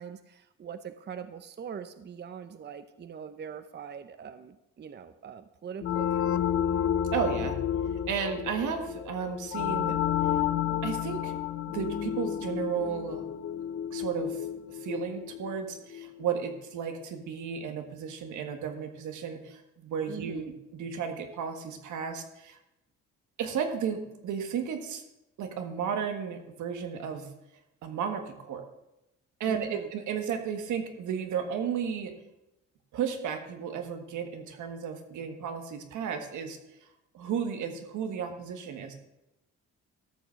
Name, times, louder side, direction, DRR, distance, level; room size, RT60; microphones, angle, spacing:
voice 1, 0.0-6.5 20.1-20.4 29.5-29.9, right 7 dB, 35° right, 11 dB, 0.7 m, -42 dB
sound 1, 5.8-16.3, left 10 dB, 50° left, 0.6 m, -31 dB
voice 2, 7.1-7.6 8.1-10.0 10.3-10.4 10.8-11.4 11.7-13.2 13.9-22.6 23.4-25.0 25.4-27.3 27.8-28.7 29.4-32.2 32.9-36.9 37.1-38.9, right 7 dB, 80° right, 6 dB, 1.6 m, -34 dB
13.0 x 5.9 x 6.4 m, 0.91 s
cardioid pair, 90°, 30 cm